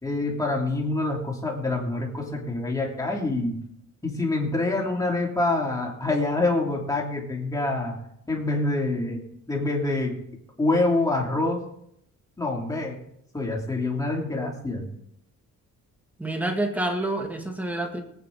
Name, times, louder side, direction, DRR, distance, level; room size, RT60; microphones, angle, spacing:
voice 1, 0.0-3.6 4.0-8.0 8.3-9.2 9.5-10.2 10.6-11.6 12.4-13.0 13.3-14.9, left 2 dB, 10° left, -1 dB, 2.8 m, -26 dB
voice 2, 16.2-18.0, right 1 dB, 5° right, 3 dB, 1.8 m, -28 dB
23.5 x 9.0 x 3.6 m, 0.73 s
cardioid pair, 155°, 32 cm